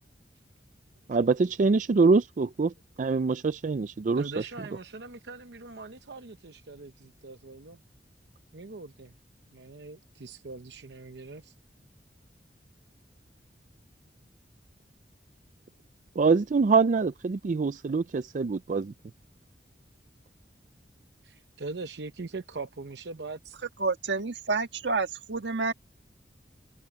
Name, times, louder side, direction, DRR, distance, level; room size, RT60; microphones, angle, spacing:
voice 1, 1.1-2.7 3.0-4.2 16.2-18.9, right 4 dB, 45° right, 0.4 m, -24 dB
voice 2, 4.2-7.8 8.5-9.1 9.5-11.5 21.2-23.6, right 3 dB, 70° right, 0.8 m, -41 dB
voice 3, 23.8-25.7, right 4 dB, 85° right, 1.5 m, -29 dB
head